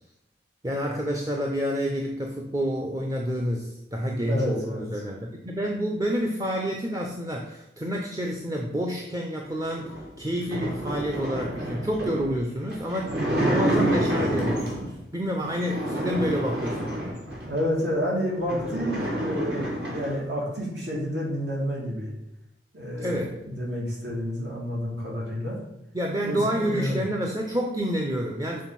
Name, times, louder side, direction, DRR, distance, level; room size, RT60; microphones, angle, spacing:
voice 1, 0.6-17.2 23.0-23.4 25.9-28.6, equal, 20° right, 1 dB, 0.6 m, -29 dB
voice 2, 4.3-4.9 17.4-22.1 22.7-25.6 26.3-27.0, equal, 75° right, -4 dB, 2.6 m, -29 dB
sound 1, 9.8-15.0 15.5-17.6 18.1-18.2 18.4-20.2, right 1 dB, 60° right, 2.0 m, -28 dB
6.4 x 3.9 x 5.7 m, 0.87 s
head